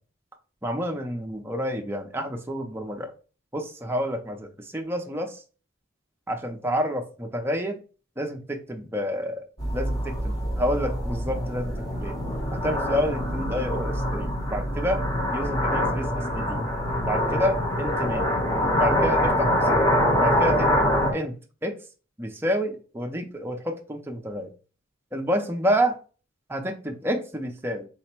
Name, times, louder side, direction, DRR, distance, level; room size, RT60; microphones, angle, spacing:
voice 1, 0.6-3.1 3.5-5.4 6.3-7.8 8.2-9.4 9.7-12.2 12.5-15.0 15.3-16.6 17.1-18.3 18.7-19.8 20.2-21.3 21.6-21.7 22.2-24.5 25.1-26.0 26.5-27.9, equal, 10° right, 2 dB, 0.5 m, -29 dB
sound 1, 9.6-21.1, equal, 20° left, 0.8 m, -25 dB
4.0 x 2.1 x 4.3 m, 0.37 s
head